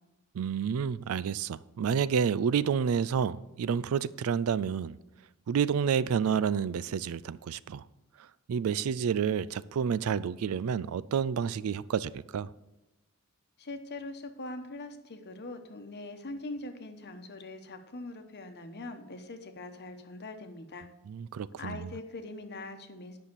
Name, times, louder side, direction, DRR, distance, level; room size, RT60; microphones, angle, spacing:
voice 1, 0.3-5.0 5.5-7.8 8.5-12.5 21.1-21.9, right 7 dB, 70° right, 19 dB, 0.4 m, -29 dB
voice 2, 13.6-20.9 21.6-23.2, left 2 dB, 50° left, 7 dB, 1.0 m, -42 dB
9.6 x 5.8 x 6.8 m, 0.93 s
head